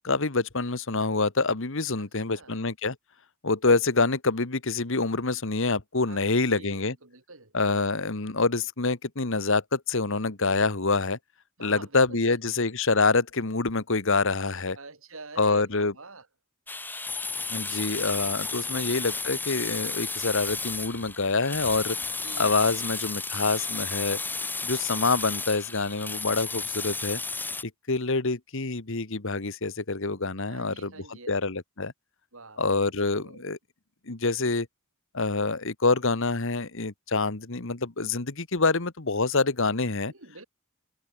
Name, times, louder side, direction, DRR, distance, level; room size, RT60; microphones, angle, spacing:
voice 1, 0.0-2.9 3.4-6.9 7.5-11.2 11.6-14.8 15.4-15.9 17.5-22.0 22.4-24.2 24.6-27.2 27.9-30.9 31.3-31.9 32.6-33.6 34.1-34.7 35.1-40.1, left 3 dB, 60° left, 1.6 m, -26 dB
voice 2, 2.0-2.6 6.1-7.5 11.6-12.4 14.7-16.3 17.8-18.8 22.2-22.7 30.5-31.3 32.3-32.9 33.2-33.4 40.1-40.4, right 3 dB, 65° right, 4.6 m, -47 dB
sound 1, 16.7-27.6, left 3 dB, 10° left, 0.7 m, -33 dB
head